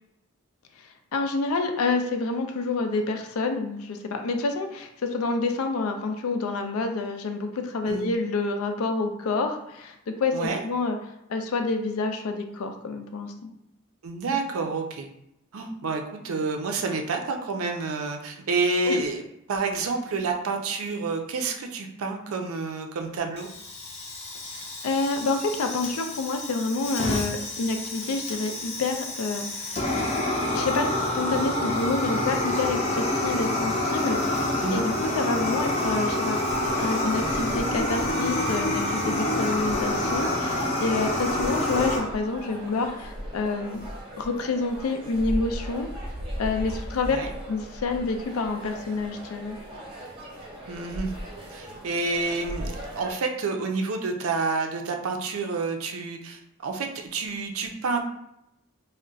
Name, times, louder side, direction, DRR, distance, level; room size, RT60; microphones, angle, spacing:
voice 1, 0.8-11.0 11.3-13.5 18.9-19.0 24.5-29.8 30.5-36.4 36.8-43.9 44.2-45.9 46.4-47.2 47.5-49.6, left 3 dB, 90° left, 6 dB, 0.4 m, -28 dB
voice 2, 14.0-15.1 15.5-19.2 19.5-23.5 34.6-34.8 47.1-47.3 50.7-51.1 51.5-58.0, right 3 dB, 80° right, 4 dB, 0.4 m, -29 dB
Fire, 23.4-42.0, left 1 dB, 30° left, 0.5 m, -28 dB
sound 1, 36.5-53.1, equal, 25° right, 0.7 m, -38 dB
2.3 x 2.1 x 3.8 m, 0.80 s
head